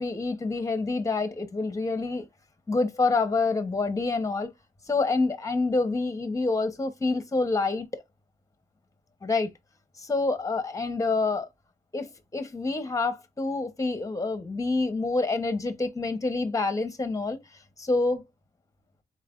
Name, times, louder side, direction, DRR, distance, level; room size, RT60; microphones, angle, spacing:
voice 1, 0.0-2.3 2.7-4.5 4.9-8.0 9.2-9.5 10.0-11.5 11.9-17.4 17.8-18.2, left 3 dB, 20° left, 1.0 m, -27 dB
4.4 x 3.2 x 2.4 m
cardioid pair, 95°, 14 cm